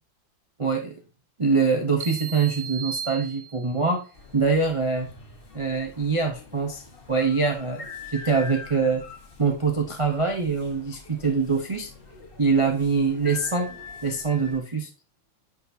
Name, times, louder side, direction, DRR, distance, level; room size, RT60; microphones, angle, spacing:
voice 1, 0.6-1.0 1.4-4.0 4.3-5.1 5.5-6.8 7.1-9.0 9.4-11.9 12.4-13.7 14.0-14.9, right 4 dB, 35° right, 1 dB, 0.4 m, -24 dB
sound 1, 2.0-3.9, right 9 dB, 80° right, 0.7 m, -36 dB
sound 2, 4.1-14.6, left 4 dB, 30° left, 1.5 m, -44 dB
10.0 x 5.2 x 2.7 m, 0.35 s
omnidirectional pair, 2.0 m